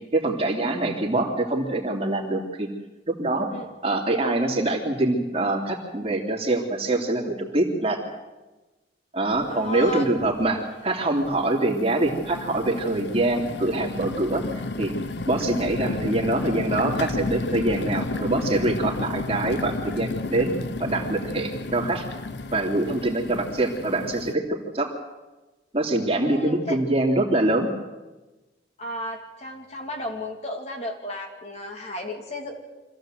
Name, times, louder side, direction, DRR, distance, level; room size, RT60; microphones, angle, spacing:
voice 1, 0.1-2.7 3.1-3.5 3.8-8.0 9.1-14.4 14.8-14.9 15.3-20.5 20.8-22.0 22.5-24.9 25.7-27.7, right 2 dB, 35° right, 0 dB, 3.0 m, -24 dB
sound 1, 9.3-9.4 9.9-10.5 11.2-24.3, left 2 dB, 70° left, 0.9 m, -32 dB
voice 2, 9.5-10.1 10.4-10.7 14.3-14.5 15.5-15.6 26.1-26.8 28.8-32.5, left 1 dB, 35° left, 2 dB, 2.9 m, -34 dB
25.5 x 16.0 x 7.9 m, 1.1 s
head